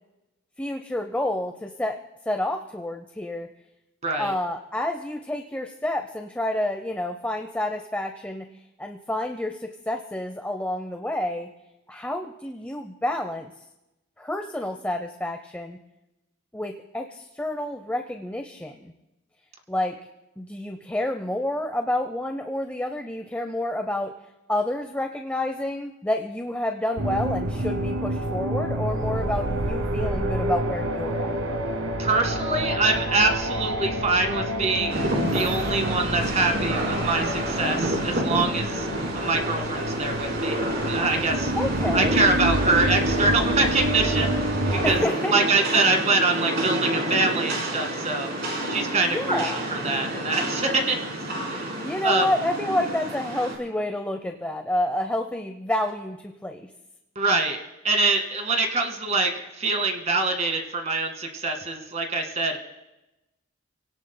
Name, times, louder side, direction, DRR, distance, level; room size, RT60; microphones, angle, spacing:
voice 1, 0.6-2.0 2.3-3.5 4.2-8.5 8.8-11.5 11.9-13.5 14.2-15.8 16.5-18.9 19.7-20.0 20.4-24.1 24.5-31.3 41.5-42.2 44.8-45.3 49.1-49.7 51.8-56.7, left 1 dB, 10° left, 4 dB, 0.6 m, -29 dB
voice 2, 4.0-4.3 32.0-38.9 39.1-40.6 40.8-41.5 41.9-44.3 44.8-45.0 45.3-48.3 48.7-51.0 51.5-51.7 52.0-52.3 57.2-57.6 57.8-62.6, right 3 dB, 35° right, 4 dB, 2.0 m, -24 dB
sound 1, 27.0-45.0, right 1 dB, 75° right, 1.1 m, -28 dB
Rain, 34.9-53.6, right 1 dB, 50° right, 4.0 m, -29 dB
29.0 x 17.5 x 2.2 m, 0.98 s
head